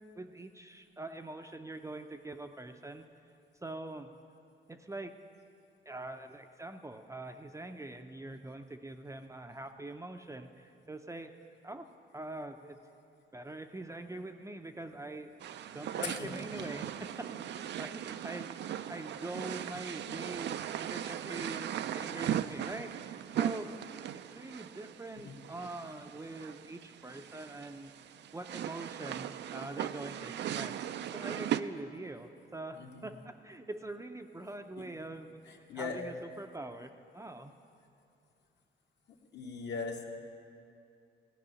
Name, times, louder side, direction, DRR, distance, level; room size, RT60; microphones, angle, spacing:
voice 1, 0.2-3.1 3.6-4.1 4.7-5.1 5.9-11.3 11.6-11.9 12.1-12.8 13.3-15.3 15.7-17.1 17.5-23.7 24.3-27.9 28.3-37.5, right 2 dB, 15° right, 5 dB, 0.5 m, -44 dB
sound 1, 15.4-31.6, right 10 dB, 60° right, 0.4 m, -38 dB
voice 2, 35.5-36.0 39.3-40.0, left 4 dB, 60° left, 0 dB, 1.6 m, -39 dB
15.5 x 5.5 x 9.7 m, 2.5 s
cardioid pair, 90°, 20 cm